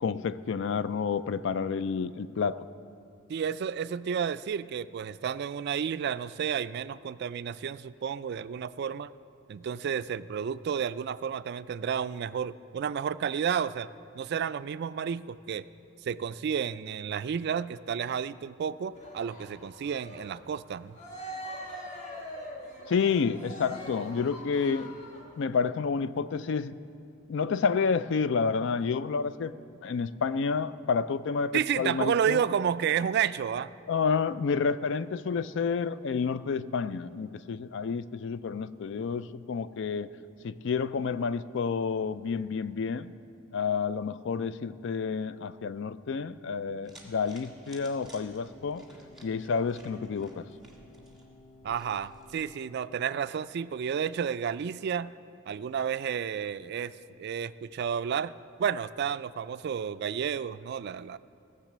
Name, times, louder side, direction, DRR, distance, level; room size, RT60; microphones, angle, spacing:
voice 1, 0.0-2.7 22.9-24.9 25.4-26.8 27.3-29.5 29.8-32.4 33.9-40.1 40.4-43.1 43.5-48.8 49.2-50.4, left 5 dB, 60° left, 15 dB, 0.4 m, -29 dB
voice 2, 3.3-9.1 9.5-13.9 14.2-15.7 16.0-21.0 31.5-33.7 51.6-55.1 55.5-56.9 57.2-58.3 58.6-61.2, right 7 dB, 55° right, 15 dB, 0.3 m, -31 dB
Cheering, 18.9-25.4, equal, 35° left, 1.6 m, -43 dB
sound 1, 46.8-52.5, right 1 dB, ahead, 1.6 m, -55 dB
sound 2, 48.1-53.2, left 2 dB, 15° left, 1.4 m, -56 dB
16.5 x 6.7 x 7.3 m, 2.6 s
head